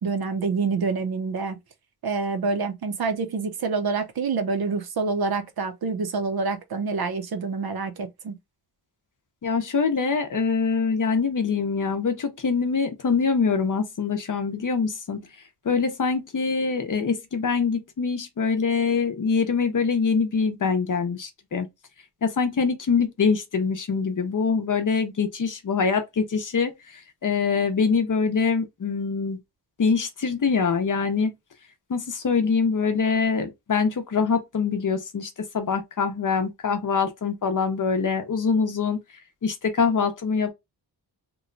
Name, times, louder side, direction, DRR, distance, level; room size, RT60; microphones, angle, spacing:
voice 1, 0.0-1.6 2.0-8.4, right 4 dB, 60° right, 0.7 m, -27 dB
voice 2, 9.4-15.2 15.6-21.7 22.2-29.4 29.8-31.3 31.9-39.0 39.4-40.5, left 5 dB, 50° left, 0.7 m, -24 dB
3.0 x 2.1 x 3.8 m
wide cardioid pair, 165°, 42 cm